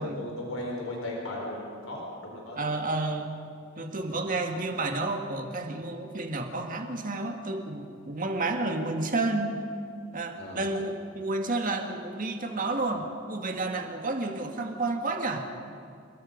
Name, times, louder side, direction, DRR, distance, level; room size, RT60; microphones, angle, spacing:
voice 1, 0.0-2.7 10.4-10.7, left 1 dB, 90° left, -1 dB, 4.4 m, -36 dB
voice 2, 2.6-3.3 3.8-9.5 10.1-15.5, right 2 dB, 40° right, 4 dB, 2.1 m, -31 dB
28.5 x 21.5 x 5.4 m, 2.4 s
head